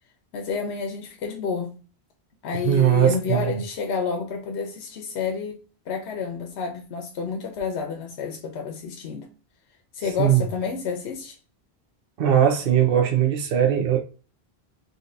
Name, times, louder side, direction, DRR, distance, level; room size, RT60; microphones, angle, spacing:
voice 1, 0.3-1.8 2.4-5.6 5.9-9.3 9.9-11.4, left 5 dB, 85° left, 0.9 m, -29 dB
voice 2, 2.6-3.5 10.2-10.4 12.2-14.0, right 10 dB, 65° right, 0.9 m, -20 dB
3.9 x 2.9 x 2.6 m
omnidirectional pair, 1.1 m